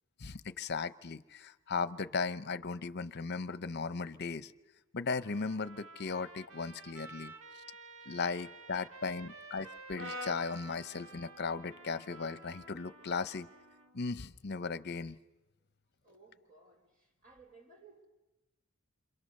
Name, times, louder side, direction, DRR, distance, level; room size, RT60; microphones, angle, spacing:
voice 1, 0.2-4.5 4.9-7.3 8.1-13.5 13.9-15.2, left 4 dB, 55° left, 0.8 m, -37 dB
Trumpet, 5.1-13.9, right 3 dB, 85° right, 1.7 m, -52 dB
voice 2, 7.2-7.6 8.6-9.3 15.6-15.7 16.0-18.1, right 3 dB, 40° right, 4.8 m, -61 dB
Brass instrument, 9.9-14.2, left 1 dB, 70° right, 4.2 m, -49 dB
29.0 x 26.0 x 6.7 m
head